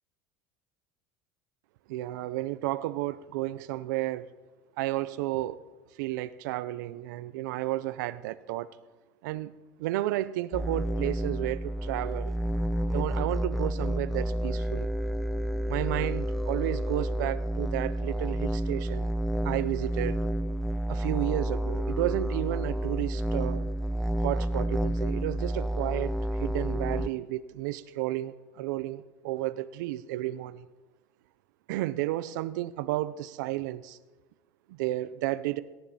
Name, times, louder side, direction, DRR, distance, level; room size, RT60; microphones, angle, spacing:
voice 1, 1.9-4.3 4.8-5.6 6.0-8.8 9.2-9.5 9.8-12.4 12.9-14.9 15.7-19.1 19.4-20.2 20.9-23.7 24.2-30.7 31.7-34.0 34.7-35.6, right 16 dB, 90° right, 0.6 m, -32 dB
sound 1, 10.5-27.1, equal, ahead, 0.4 m, -30 dB
17.5 x 12.5 x 4.2 m
supercardioid pair, 120°, 10 cm